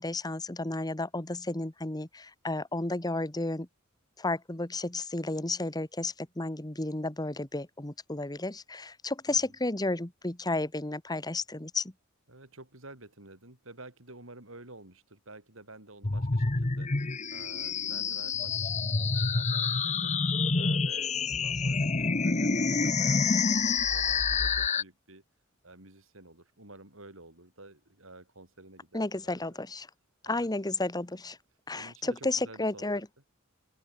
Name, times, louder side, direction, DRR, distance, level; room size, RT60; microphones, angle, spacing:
voice 1, 0.0-3.7 4.2-11.8 28.9-29.9 30.2-31.4 31.7-33.0, left 2 dB, 20° left, 1.5 m, -32 dB
voice 2, 12.3-25.2 25.6-29.4 30.2-30.5 31.7-33.0, right 2 dB, 75° right, 6.5 m, -51 dB
sound 1, 16.0-24.8, left 4 dB, 35° left, 1.0 m, -28 dB
open air
head